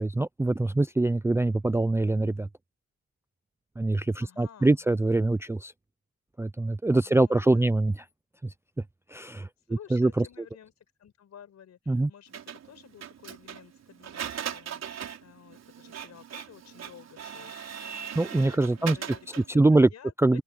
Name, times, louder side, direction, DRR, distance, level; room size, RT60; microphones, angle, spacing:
voice 1, 0.0-2.5 3.8-5.7 6.4-8.0 9.1-9.5 9.9-10.2 11.9-12.1 18.2-19.0 19.5-19.9 20.2-20.4, right 2 dB, 10° right, 0.4 m, -23 dB
voice 2, 4.2-4.9 7.0-8.0 9.7-17.5 18.7-20.4, left 9 dB, 60° left, 5.3 m, -52 dB
Printer, 12.3-19.6, right 8 dB, 60° right, 4.2 m, -39 dB
cardioid pair, 90°, 30 cm